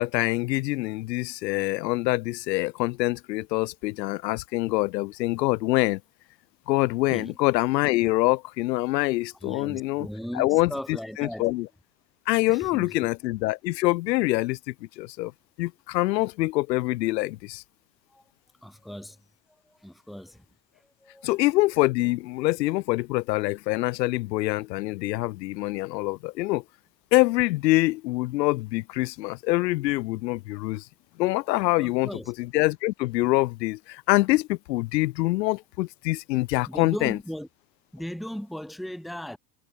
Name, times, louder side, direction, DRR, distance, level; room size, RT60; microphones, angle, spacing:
voice 1, 0.0-6.0 6.7-10.1 10.3-11.7 12.3-15.3 15.6-17.6 21.2-26.6 27.1-30.8 31.2-32.1 32.4-37.2, left 20 dB, 85° left, 0.9 m, -25 dB
voice 2, 9.4-11.5 12.5-12.9 18.1-18.2 18.6-19.2 19.6-20.4 20.8-21.3 31.8-32.3 36.7-37.5 37.9-39.4, equal, ahead, 1.7 m, -37 dB
hypercardioid pair, 85°, 49 cm